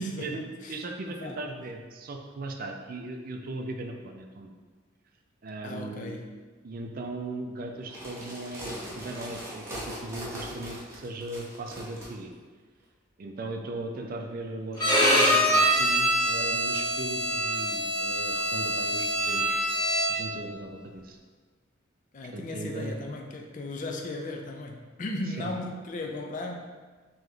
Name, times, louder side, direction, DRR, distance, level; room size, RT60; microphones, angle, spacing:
voice 1, 0.0-0.8 1.1-1.4 5.6-6.3 22.1-26.5, left 1 dB, 40° left, 2 dB, 0.4 m, -36 dB
voice 2, 0.7-4.5 5.4-6.1 6.6-12.3 13.2-19.8 20.1-21.2 22.3-23.0 25.4-25.5, right 2 dB, 50° right, 3 dB, 0.4 m, -38 dB
sound 1, 7.8-12.1, equal, 15° right, 0.8 m, -40 dB
Bowed string instrument, 14.8-20.4, equal, 20° left, 1.0 m, -25 dB
3.3 x 3.0 x 3.7 m, 1.4 s
head